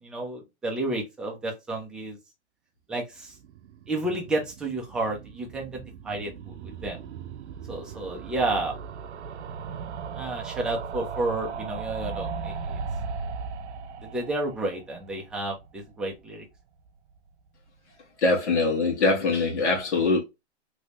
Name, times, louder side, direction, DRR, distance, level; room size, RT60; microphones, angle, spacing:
voice 1, 0.0-2.2 2.9-3.3 3.9-7.0 7.7-8.8 10.2-12.8 14.0-16.4, right 2 dB, ahead, 0.3 m, -31 dB
sound 1, 3.2-16.3 16.5-16.6 16.8-16.9 17.1-17.2, right 5 dB, 75° right, 0.6 m, -38 dB
voice 2, 18.2-20.2, left 3 dB, 75° left, 1.4 m, -23 dB
3.2 x 2.6 x 2.8 m
hypercardioid pair, 130°, 34 cm